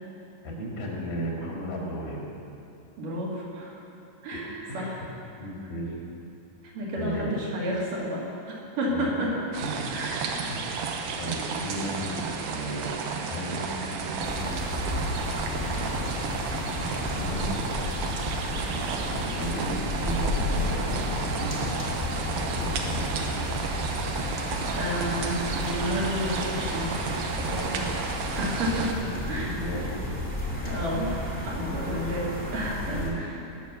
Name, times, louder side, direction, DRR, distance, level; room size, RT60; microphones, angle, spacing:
voice 1, 0.4-2.2 4.7-4.9 5.4-6.0 6.9-7.3 8.9-9.4 10.3-10.6 11.2-13.0 13.3-14.9 16.4-17.6 19.1-21.6 22.5-23.3 27.4-27.9 29.0-30.0 30.5-30.8 32.5-32.6 32.9-33.3, equal, 85° left, -3 dB, 4.3 m, -35 dB
voice 2, 3.0-3.8 4.2-5.0 6.6-8.3 8.8-9.3 9.9-10.4 24.7-26.9 28.3-28.9 29.3-29.7 30.6-33.3, equal, 70° right, -5 dB, 4.0 m, -31 dB
sound 1, 9.5-28.9, right 5 dB, 90° right, 2.7 m, -33 dB
sound 2, 14.2-33.1, left 1 dB, 10° right, 1.0 m, -32 dB
19.0 x 6.9 x 6.8 m, 2.7 s
omnidirectional pair, 4.0 m